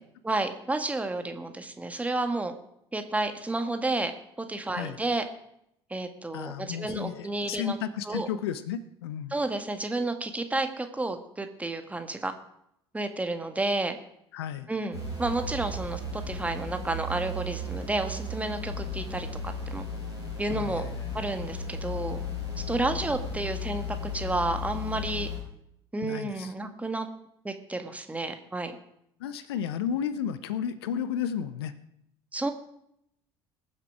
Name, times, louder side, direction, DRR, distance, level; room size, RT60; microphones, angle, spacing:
voice 1, 0.2-2.5 2.9-4.1 4.4-5.3 5.9-7.8 8.1-8.3 9.3-12.3 12.9-14.0 14.7-19.9 20.4-20.9 21.1-22.2 22.7-25.3 25.9-27.1 27.4-28.8 32.3-32.5, right 2 dB, 10° right, 7 dB, 1.6 m, -31 dB
voice 2, 6.3-9.3 14.3-14.7 20.5-21.2 26.0-26.5 29.2-31.7, left 8 dB, 70° left, 14 dB, 0.7 m, -33 dB
sound 1, 14.9-25.4, left 2 dB, 85° left, 4.4 m, -35 dB
21.0 x 7.4 x 4.8 m, 0.75 s
figure-of-eight pair, 60°, 14 cm